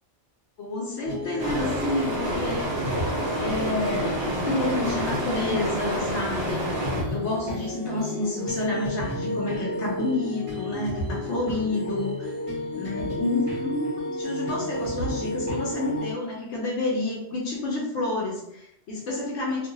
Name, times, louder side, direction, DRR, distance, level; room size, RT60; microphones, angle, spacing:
voice 1, 0.6-2.6 3.4-6.6 7.1-12.3 12.7-19.7, left 2 dB, 75° left, -3 dB, 1.0 m, -29 dB
sound 1, 1.0-16.1, left 1 dB, 30° right, 1.1 m, -32 dB
sound 2, 1.4-7.0, right 1 dB, 60° right, 1.0 m, -29 dB
2.7 x 2.7 x 2.6 m, 0.77 s
omnidirectional pair, 1.2 m